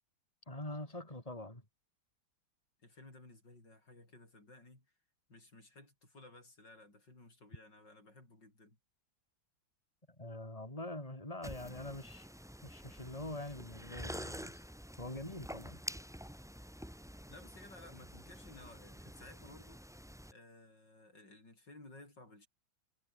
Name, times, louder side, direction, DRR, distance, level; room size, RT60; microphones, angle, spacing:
voice 1, 0.5-1.6 10.2-12.3 12.6-14.6 15.0-15.8, left 1 dB, 15° left, 6.0 m, -44 dB
voice 2, 2.8-4.9 5.3-8.8 17.3-19.8 20.3-22.5, left 2 dB, 60° left, 8.1 m, -57 dB
sound 1, 11.4-20.3, equal, ahead, 1.6 m, -48 dB
omnidirectional pair, 2.2 m